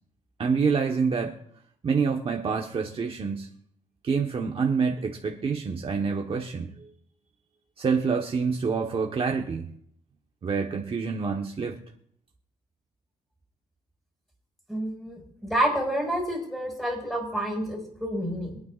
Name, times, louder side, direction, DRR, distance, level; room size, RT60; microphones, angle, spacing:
voice 1, 0.4-1.3 1.8-3.5 4.0-6.7 7.8-9.7 10.4-11.8, right 5 dB, 40° right, 1 dB, 1.2 m, -27 dB
voice 2, 14.7-15.1 15.4-18.6, right 1 dB, ahead, 1 dB, 5.6 m, -28 dB
25.0 x 9.3 x 2.5 m, 0.67 s
cardioid pair, 105°, 14 cm